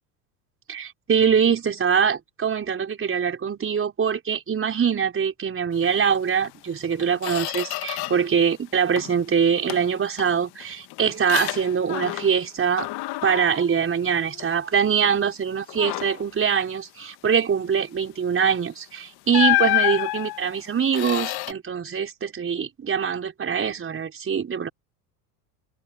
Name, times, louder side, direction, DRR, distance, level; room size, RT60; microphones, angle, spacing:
voice 1, 0.7-12.9 13.2-24.7, right 7 dB, 25° right, 5.5 m, -23 dB
Squeak, 6.4-6.6 6.9-8.4 8.7-9.3 9.7-12.5 12.8-14.6 15.0-15.3 15.7-16.3 18.4-18.6 19.3-21.5, left 21 dB, 50° left, 2.1 m, -29 dB
hypercardioid pair, 85°, 48 cm